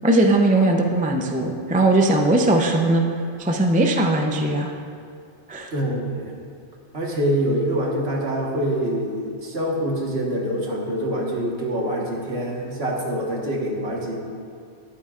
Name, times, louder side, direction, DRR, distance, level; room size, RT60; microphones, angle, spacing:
voice 1, 0.0-3.0 3.4-4.7 5.5-5.7, right 2 dB, 10° right, 2 dB, 0.4 m, -19 dB
voice 2, 5.7-6.3 6.9-14.2, right 1 dB, 55° right, -2 dB, 1.7 m, -25 dB
13.0 x 11.5 x 2.5 m, 2.4 s
omnidirectional pair, 1.3 m